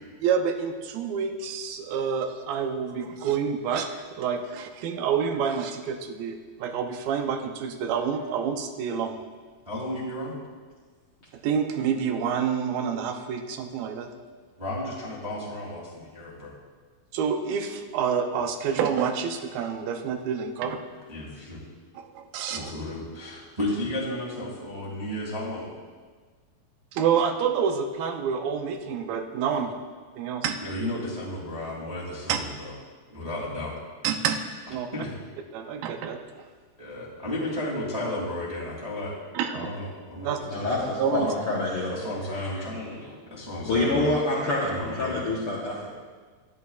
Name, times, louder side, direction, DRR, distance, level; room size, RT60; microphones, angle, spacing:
voice 1, 0.2-9.2 11.4-14.1 17.1-20.8 22.0-22.7 26.9-29.7 30.2-30.6 32.3-32.4 34.0-34.4 34.7-34.9 35.5-36.4 39.3-39.7 40.2-40.4 41.0-41.3, right 7 dB, 80° right, 5 dB, 2.4 m, -28 dB
voice 2, 9.6-10.3 14.6-16.5 21.1-21.6 22.5-25.7 30.6-32.7 33.1-33.8 34.9-35.1 36.8-39.1 39.5-40.8 41.9-44.1 44.6-45.2, left 1 dB, 15° right, -7 dB, 1.6 m, -33 dB
voice 3, 40.5-42.0 42.3-42.5 42.7-42.8 43.6-45.9, left 2 dB, 70° left, -5 dB, 1.3 m, -27 dB
13.5 x 10.5 x 2.4 m, 1.5 s
omnidirectional pair, 4.2 m